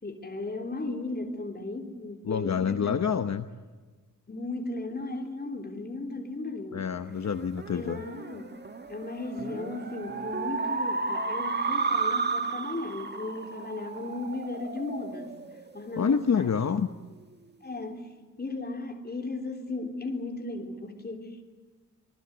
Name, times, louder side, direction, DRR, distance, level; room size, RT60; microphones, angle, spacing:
voice 1, 0.0-3.1 4.3-6.9 7.7-8.6 8.9-15.4 15.7-16.5 17.6-18.1 18.4-21.4, left 2 dB, 30° left, 3 dB, 3.6 m, -36 dB
voice 2, 2.2-3.5 6.7-8.0 16.0-16.9, left 6 dB, 55° left, 9 dB, 1.0 m, -27 dB
sound 1, 7.2-16.1, right 4 dB, 30° right, 1.6 m, -33 dB
26.0 x 21.0 x 8.1 m, 1.3 s
wide cardioid pair, 95°, 33 cm